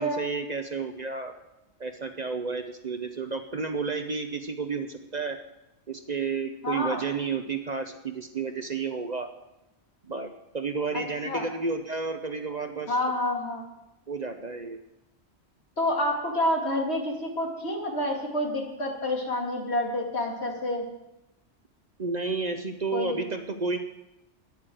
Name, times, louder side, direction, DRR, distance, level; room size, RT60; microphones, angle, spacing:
voice 1, 0.0-1.3 1.8-5.4 5.9-9.3 10.0-13.0 14.1-14.8 22.0-23.8, right 4 dB, 40° right, 7 dB, 0.8 m, -31 dB
voice 2, 6.6-7.0 11.2-11.5 12.9-13.6 15.8-20.9 22.9-23.2, left 1 dB, 65° left, 0 dB, 2.7 m, -28 dB
10.5 x 10.0 x 7.7 m, 0.94 s
omnidirectional pair, 1.2 m